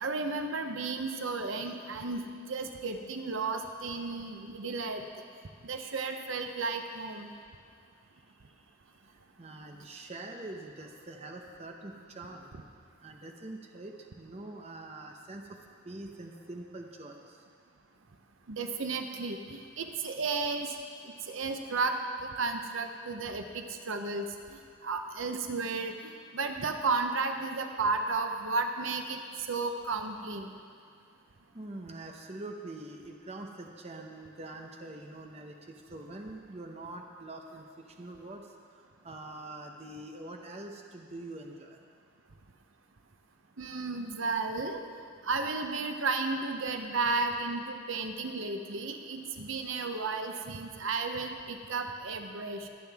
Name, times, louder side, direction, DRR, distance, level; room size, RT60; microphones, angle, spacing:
voice 1, 0.0-2.2 2.5-5.0 5.6-7.3 18.5-20.7 21.3-24.3 24.5-25.9 26.3-29.2 29.5-30.5 43.6-44.8 45.2-52.7, right 3 dB, 75° right, 5 dB, 0.8 m, -33 dB
voice 2, 9.4-12.5 13.0-15.6 15.8-17.4 31.5-37.6 38.0-38.5 39.0-41.8, right 2 dB, 30° right, 2 dB, 0.7 m, -44 dB
22.5 x 7.6 x 3.5 m, 2.3 s
head